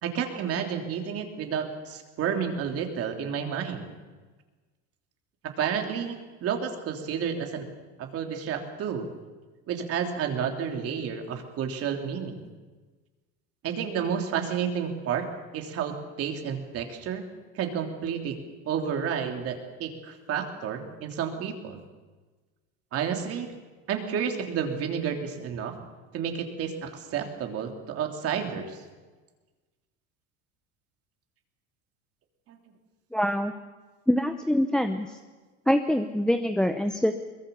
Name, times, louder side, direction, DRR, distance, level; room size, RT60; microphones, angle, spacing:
voice 1, 0.0-3.9 5.4-7.7 8.0-9.1 9.7-12.5 13.6-15.3 15.5-17.2 17.5-18.4 18.6-21.8 22.9-23.5 23.9-25.8 26.1-28.8 32.5-32.6, right 7 dB, 45° right, 4 dB, 3.2 m, -31 dB
voice 2, 33.1-33.5 34.1-35.2 35.7-37.1, equal, ahead, 7 dB, 0.7 m, -24 dB
22.5 x 21.0 x 7.0 m, 1.3 s
cardioid pair, 140°, 34 cm